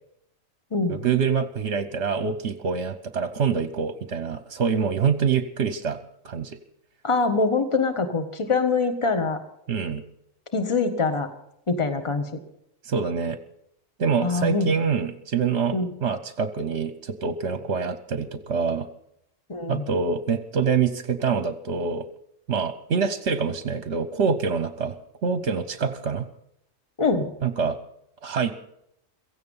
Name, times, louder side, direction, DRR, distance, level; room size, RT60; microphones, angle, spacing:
voice 1, 0.9-6.0 6.2-6.6 9.7-10.0 12.8-13.4 14.0-15.8 16.0-18.9 19.7-22.0 22.5-25.0 25.2-26.2 27.4-27.8 28.2-28.5, right 6 dB, 60° right, 11 dB, 1.1 m, -25 dB
voice 2, 7.0-9.4 10.5-11.3 11.7-12.3 14.2-14.7 15.7-15.9 19.5-19.8 27.0-27.3, left 4 dB, 25° left, 8 dB, 1.5 m, -24 dB
16.5 x 15.0 x 5.5 m, 0.75 s
omnidirectional pair, 1.4 m